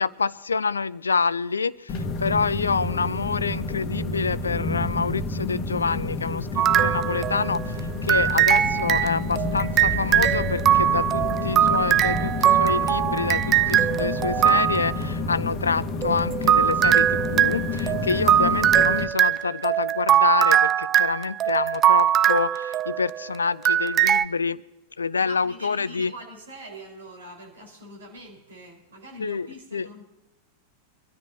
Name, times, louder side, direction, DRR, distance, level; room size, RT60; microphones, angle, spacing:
voice 1, 0.0-24.6 25.0-26.1 29.2-29.5 29.7-29.9, left 5 dB, 75° left, 19 dB, 0.5 m, -27 dB
sound 1, 1.9-19.0, left 2 dB, 35° left, 1.4 m, -29 dB
sound 2, 6.6-7.7 8.1-15.0 16.0-23.2 23.6-24.2, right 10 dB, 30° right, 0.4 m, -21 dB
voice 2, 25.2-30.0, right 1 dB, 70° right, 1 dB, 4.4 m, -44 dB
25.0 x 13.0 x 2.8 m, 0.98 s
figure-of-eight pair, 90°, 0 cm